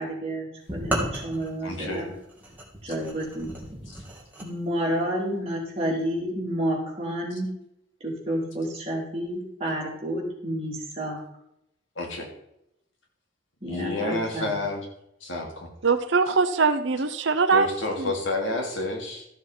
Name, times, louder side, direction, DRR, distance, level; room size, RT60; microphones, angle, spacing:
voice 1, 0.0-2.1 2.8-3.5 4.4-7.5 8.0-11.2 13.6-14.5, equal, 30° right, -4 dB, 3.4 m, -30 dB
sound 1, 0.7-4.5, right 1 dB, 10° right, 2.2 m, -34 dB
voice 2, 1.6-2.1 12.0-12.3 13.7-14.9 15.2-15.7 17.5-19.3, left 2 dB, 75° left, 1 dB, 2.5 m, -29 dB
voice 3, 15.8-17.7 18.0-18.1, right 4 dB, 65° right, 9 dB, 0.7 m, -22 dB
13.5 x 6.9 x 4.4 m, 0.81 s
head